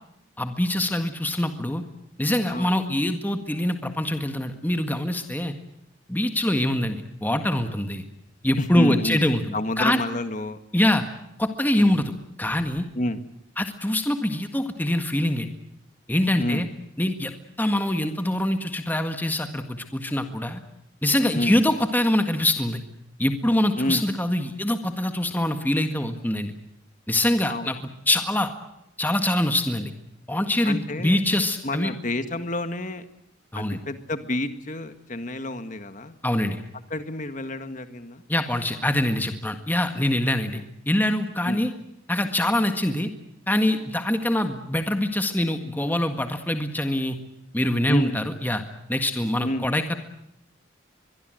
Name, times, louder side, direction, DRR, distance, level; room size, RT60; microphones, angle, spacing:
voice 1, 0.4-1.8 2.2-5.5 6.1-8.0 8.4-10.0 10.7-11.0 11.4-12.1 12.4-12.9 13.6-15.5 16.1-16.7 17.0-20.6 21.0-22.8 23.2-26.5 27.1-27.8 28.1-28.5 29.0-29.9 30.3-31.9 33.5-33.8 36.2-36.6 38.3-41.7 42.1-43.1 43.5-47.2 47.5-48.6 48.9-50.0, left 1 dB, 10° left, 7 dB, 1.7 m, -24 dB
voice 2, 8.6-9.2 9.5-10.6 11.8-12.0 12.9-13.2 16.4-16.7 21.3-21.6 23.8-24.0 27.5-27.7 30.6-31.2 31.6-33.0 33.5-36.2 36.9-38.2 41.5-41.6 47.9-48.2 49.4-49.7, left 1 dB, 40° left, 9 dB, 1.8 m, -29 dB
24.0 x 22.5 x 7.8 m, 0.81 s
head